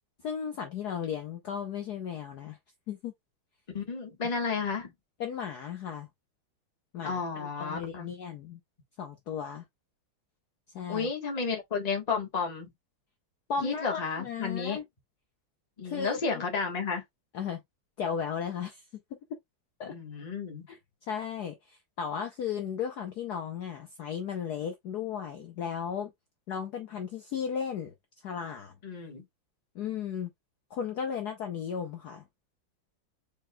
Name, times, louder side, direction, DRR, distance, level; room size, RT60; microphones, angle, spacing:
voice 1, 0.2-2.6 2.9-3.1 5.2-6.1 6.9-8.6 9.0-9.6 10.7-11.1 13.5-14.8 15.8-16.2 17.3-17.6 18.0-18.8 19.8-19.9 20.7-20.8 21.1-26.1 26.5-27.9 28.2-28.7 29.7-30.3 30.7-32.2, left 7 dB, 60° left, 1.1 m, -35 dB
voice 2, 3.7-4.9 7.0-8.1 10.9-12.7 13.6-14.8 15.8-17.0 19.8-20.7 28.8-29.2, left 5 dB, 25° left, 1.2 m, -32 dB
4.8 x 4.3 x 2.2 m
omnidirectional pair, 2.3 m